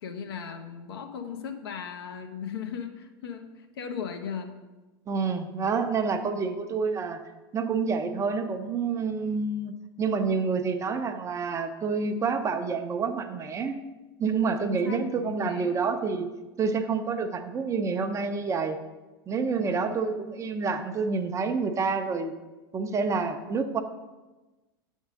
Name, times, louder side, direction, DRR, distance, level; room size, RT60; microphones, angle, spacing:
voice 1, 0.0-4.6 14.6-15.9 19.6-20.0, left 7 dB, 80° left, 6 dB, 0.8 m, -37 dB
voice 2, 5.1-7.2 7.5-13.8 14.2-16.3 16.6-18.8 19.3-22.3 22.7-23.8, right 5 dB, 25° right, 7 dB, 0.6 m, -28 dB
6.4 x 3.6 x 6.2 m, 1.1 s
hypercardioid pair, 100°, 13 cm